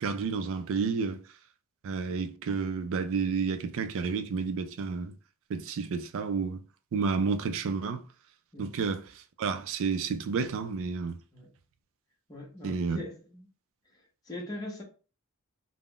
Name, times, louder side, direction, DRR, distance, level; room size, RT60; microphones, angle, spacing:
voice 1, 0.0-1.2 1.8-5.1 5.5-6.6 6.9-8.0 8.6-11.2 12.6-13.0, right 5 dB, 60° right, 0.4 m, -30 dB
voice 2, 12.3-13.5 13.9-14.8, left 2 dB, 15° left, 0.7 m, -42 dB
2.4 x 2.0 x 3.6 m
head